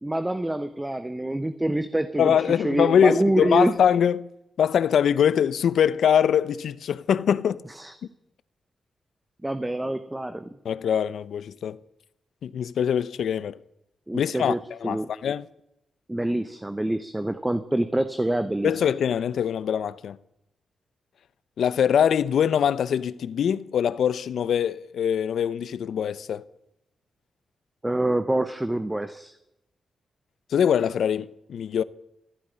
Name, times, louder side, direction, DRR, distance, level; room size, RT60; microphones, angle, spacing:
voice 1, 0.0-3.7 7.7-8.0 9.4-10.4 14.1-15.1 16.1-18.8 27.8-29.3, right 1 dB, 10° right, 0.9 m, -26 dB
voice 2, 2.2-4.3 4.6-7.6 10.6-11.8 12.4-13.6 14.1-15.5 18.6-20.2 21.6-26.4 30.5-31.8, left 8 dB, 80° left, 0.7 m, -23 dB
15.0 x 9.8 x 9.8 m
cardioid pair, 100°, 0 cm